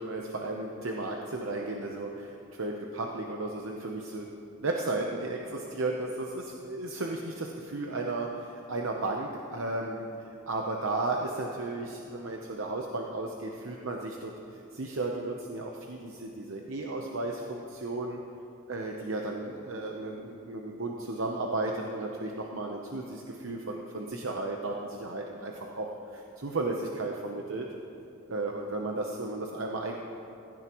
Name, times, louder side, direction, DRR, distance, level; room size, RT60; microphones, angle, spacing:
voice 1, 0.0-4.3 4.6-10.1 10.5-14.3 14.7-18.2 18.7-27.7 28.3-29.9, right 2 dB, 75° right, 1 dB, 0.8 m, -34 dB
16.0 x 14.5 x 3.0 m, 2.8 s
head